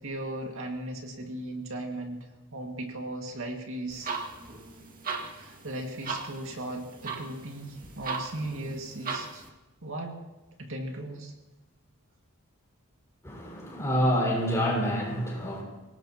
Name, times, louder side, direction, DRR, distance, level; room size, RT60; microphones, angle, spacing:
voice 1, 0.0-4.1 5.2-9.4 9.8-10.2 10.6-11.3, right 1 dB, 65° right, 1 dB, 2.2 m, -37 dB
sound 1, 3.9-9.5, right 4 dB, 40° right, 2.1 m, -38 dB
voice 2, 13.2-15.6, equal, 15° left, -3 dB, 5.5 m, -27 dB
25.0 x 18.5 x 3.0 m, 1.1 s
head